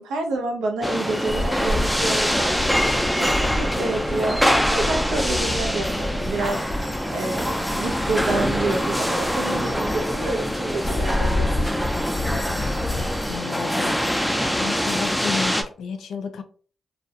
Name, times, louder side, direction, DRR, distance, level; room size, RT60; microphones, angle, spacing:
voice 1, 0.0-2.6 3.2-4.4 4.7-6.7 7.1-11.7, right 2 dB, 90° right, 0.5 m, -28 dB
sound 1, 0.8-15.6, equal, ahead, 0.4 m, -24 dB
sound 2, 1.3-13.4, left 1 dB, 30° left, 0.7 m, -30 dB
voice 2, 12.3-14.1 14.6-16.4, left 6 dB, 80° left, 0.3 m, -33 dB
2.2 x 2.1 x 2.7 m
supercardioid pair, 50°, 0 cm